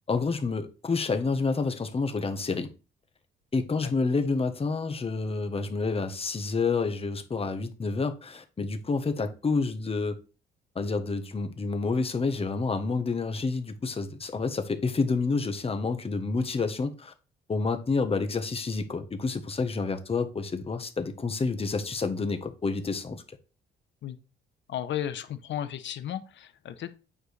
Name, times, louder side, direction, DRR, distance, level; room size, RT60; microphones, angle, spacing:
voice 1, 0.1-2.7 3.5-10.2 10.7-17.1 17.5-23.4, left 4 dB, 30° left, 1.2 m, -29 dB
voice 2, 24.7-26.9, left 10 dB, 65° left, 0.9 m, -34 dB
9.0 x 4.9 x 3.3 m
cardioid pair, 90°, 20 cm